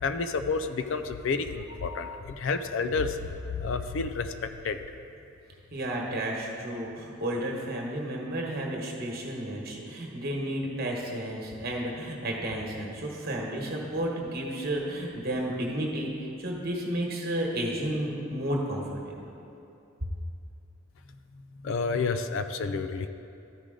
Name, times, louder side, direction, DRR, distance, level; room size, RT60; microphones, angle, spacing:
voice 1, 0.0-3.2 3.5-4.8 21.6-23.1, left 4 dB, 65° left, 9 dB, 0.4 m, -30 dB
voice 2, 5.7-19.3 20.0-20.1, right 1 dB, 50° right, -1 dB, 1.3 m, -32 dB
13.0 x 5.0 x 3.8 m, 2.7 s
head